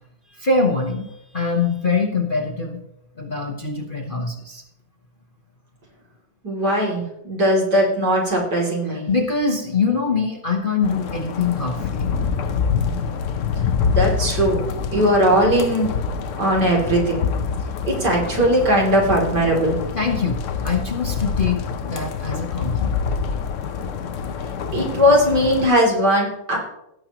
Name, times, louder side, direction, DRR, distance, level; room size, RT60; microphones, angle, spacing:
voice 1, 0.3-1.1 1.3-2.8 3.2-4.6 8.9-12.0 19.9-21.6 21.8-23.0, left 4 dB, 35° left, 1 dB, 0.9 m, -23 dB
voice 2, 6.4-9.0 13.6-14.7 14.9-15.9 16.4-17.3 17.8-19.8 24.7-26.6, equal, 65° right, -3 dB, 3.6 m, -19 dB
sound 1, 10.8-25.7, left 6 dB, 60° left, 0.9 m, -26 dB
17.0 x 7.6 x 3.0 m, 0.83 s
omnidirectional pair, 1.9 m